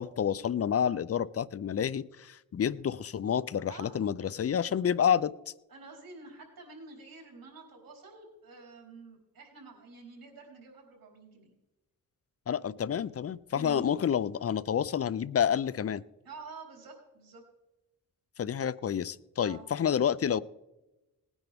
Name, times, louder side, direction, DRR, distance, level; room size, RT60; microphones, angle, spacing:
voice 1, 0.0-5.3 12.5-16.0 18.4-20.4, left 8 dB, 45° left, 19 dB, 0.5 m, -29 dB
voice 2, 3.7-4.0 5.7-11.5 13.5-13.9 16.2-17.4 19.4-19.7, right 4 dB, 90° right, 0 dB, 4.2 m, -49 dB
19.0 x 9.9 x 3.5 m, 1.0 s
cardioid pair, 80°, 34 cm